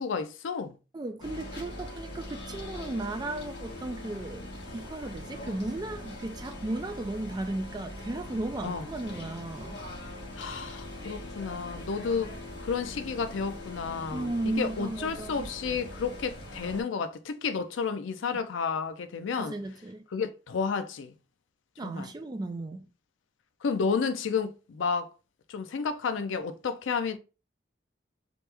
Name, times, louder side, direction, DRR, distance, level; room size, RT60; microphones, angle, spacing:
voice 1, 0.0-0.8 8.6-8.9 10.4-19.5 20.1-21.1 21.8-22.1 23.6-25.1 25.5-27.2, left 5 dB, 85° left, 0.4 m, -31 dB
voice 2, 0.9-4.4 4.7-9.8 14.1-15.5 19.3-20.0 21.8-22.9, right 2 dB, 20° right, 0.3 m, -35 dB
sound 1, 1.2-16.8, left 1 dB, 65° left, 1.1 m, -42 dB
3.0 x 2.1 x 3.3 m
head